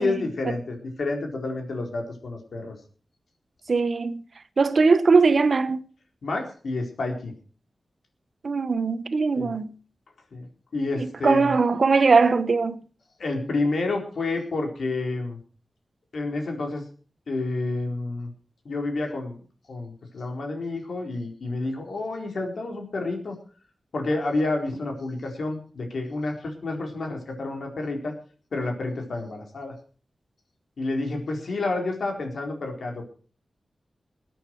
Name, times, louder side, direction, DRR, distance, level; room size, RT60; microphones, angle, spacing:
voice 1, 0.0-2.8 6.2-7.3 9.4-9.5 10.3-10.5 10.7-11.5 13.2-15.4 16.1-16.8 17.3-18.3 18.6-19.4 19.7-23.4 23.9-28.1 28.5-29.7 30.8-33.0, left 2 dB, 75° left, 4.3 m, -29 dB
voice 2, 3.7-4.2 4.6-5.8 8.4-9.7 10.9-12.8, right 4 dB, 55° right, 1.1 m, -20 dB
21.5 x 9.1 x 4.7 m
wide cardioid pair, 105°, 0 cm